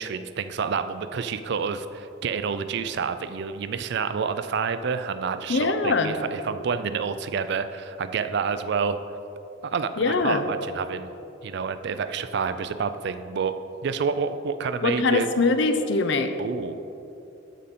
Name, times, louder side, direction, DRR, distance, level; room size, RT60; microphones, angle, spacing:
voice 1, 0.0-9.0 9.6-11.1 11.4-15.3 16.4-16.8, right 5 dB, 60° right, 11 dB, 0.4 m, -28 dB
voice 2, 5.5-6.2 10.0-10.4 14.8-16.3, left 3 dB, 65° left, 8 dB, 0.6 m, -22 dB
13.0 x 5.1 x 4.2 m, 2.9 s
head